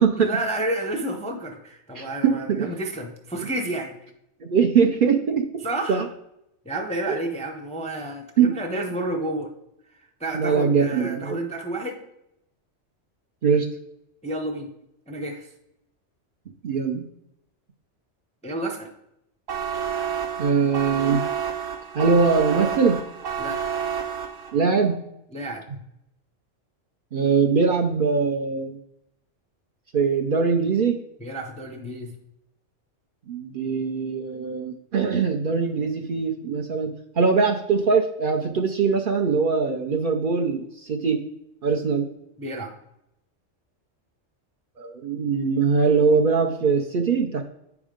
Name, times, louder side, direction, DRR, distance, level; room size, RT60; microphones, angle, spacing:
voice 1, 0.2-4.0 5.6-6.0 6.6-9.5 10.2-12.0 14.2-14.7 15.1-15.5 18.4-18.9 23.4-23.6 25.3-25.6 31.2-32.2 42.4-42.7, right 1 dB, 10° left, 2 dB, 0.4 m, -30 dB
voice 2, 1.9-2.7 4.4-5.5 5.9-6.1 7.1-7.2 8.4-8.6 10.3-11.4 13.4-13.7 16.6-17.1 20.4-21.2 21.9-23.0 24.5-25.0 27.1-28.8 29.9-31.0 33.3-36.9 37.2-41.2 41.6-42.1 44.8-47.4, right 5 dB, 55° right, 2 dB, 0.7 m, -22 dB
sound 1, 19.5-24.7, right 7 dB, 80° right, 1.2 m, -29 dB
8.9 x 3.6 x 5.0 m, 0.81 s
omnidirectional pair, 1.3 m